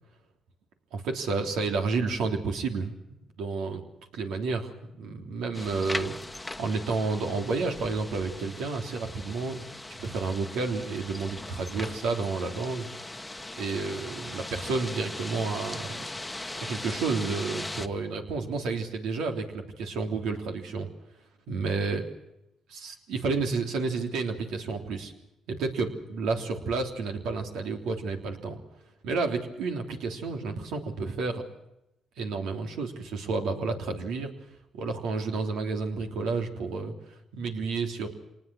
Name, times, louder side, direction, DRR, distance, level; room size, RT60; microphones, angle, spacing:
voice 1, 0.9-2.9 3.4-3.8 4.1-6.1 6.6-9.6 10.0-12.9 13.5-16.1 16.5-20.9 21.5-22.0 22.7-25.1 25.5-28.6 29.0-31.4 32.2-34.3 34.7-38.1, right 4 dB, 85° right, 4 dB, 3.4 m, -30 dB
sound 1, 5.5-17.9, left 2 dB, 10° left, 1.2 m, -39 dB
25.5 x 20.0 x 6.3 m, 0.87 s
cardioid pair, 90°, 0 cm